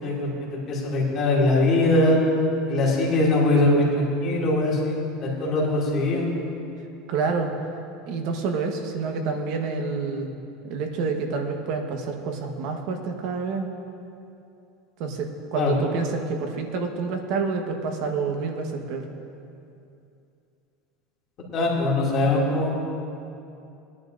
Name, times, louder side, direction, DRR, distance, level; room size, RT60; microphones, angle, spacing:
voice 1, 0.0-2.2 2.7-6.3 15.6-15.8 21.5-22.7, left 2 dB, 35° left, -5 dB, 2.5 m, -22 dB
voice 2, 7.1-7.5 8.1-10.3 10.6-13.7 15.0-19.0, right 4 dB, 55° right, 4 dB, 1.2 m, -28 dB
20.5 x 11.0 x 2.6 m, 2.7 s
supercardioid pair, 155°, 0 cm